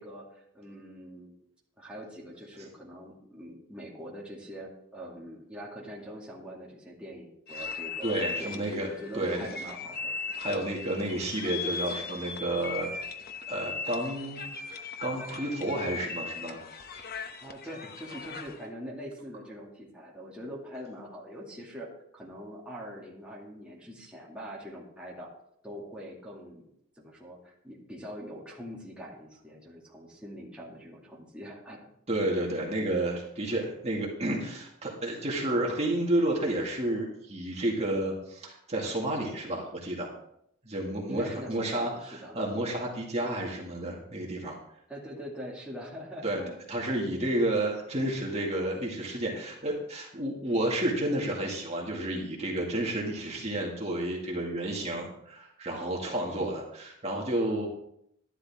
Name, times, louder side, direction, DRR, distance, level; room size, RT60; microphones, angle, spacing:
voice 1, 0.0-1.3 1.8-10.2 17.4-25.3 25.6-26.7 27.0-31.9 41.1-42.4 44.9-46.6 56.3-56.6, equal, 5° right, -5 dB, 2.3 m, -43 dB
sound 1, 7.5-18.7, left 5 dB, 45° left, 0.9 m, -38 dB
voice 2, 8.0-8.9 9.1-9.5 10.4-12.9 13.5-14.4 14.7-16.6 32.1-40.1 40.6-44.6 46.2-46.4 46.7-57.7, right 1 dB, 30° right, -2 dB, 2.0 m, -31 dB
12.0 x 11.5 x 3.6 m, 0.74 s
head